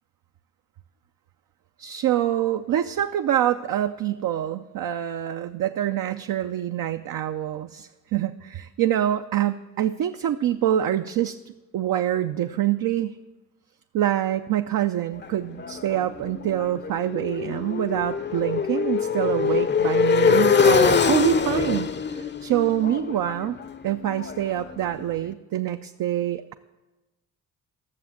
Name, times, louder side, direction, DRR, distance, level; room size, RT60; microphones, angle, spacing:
voice 1, 1.8-13.2 13.9-23.6 23.8-26.5, right 11 dB, 60° right, 7 dB, 0.6 m, -26 dB
Motorcycle, 15.2-25.1, left 6 dB, 30° left, 0.6 m, -24 dB
12.0 x 7.0 x 7.2 m, 1.1 s
supercardioid pair, 45°, 39 cm